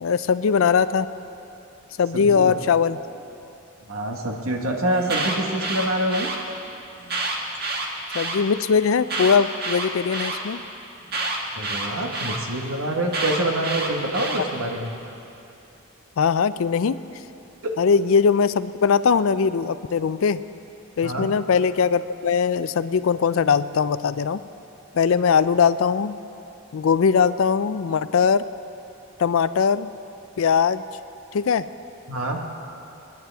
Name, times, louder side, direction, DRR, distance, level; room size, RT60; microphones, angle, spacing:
voice 1, 0.0-1.1 2.0-3.0 8.1-10.6 14.4-14.5 16.2-17.0 17.8-20.4 21.0-24.4 24.9-26.1 26.7-28.4 29.2-29.9 30.4-30.8 31.3-31.6, left 6 dB, 70° left, 15 dB, 0.4 m, -20 dB
voice 2, 2.1-2.6 3.9-6.3 11.5-15.0 17.6-17.7 21.0-21.3 32.1-32.4, right 1 dB, 80° right, 2 dB, 1.5 m, -26 dB
Alarm, 4.9-6.4 7.0-8.4 9.0-10.4 11.1-12.4 13.1-14.4, right 2 dB, 45° right, 1.4 m, -28 dB
26.5 x 10.5 x 3.5 m, 2.8 s
head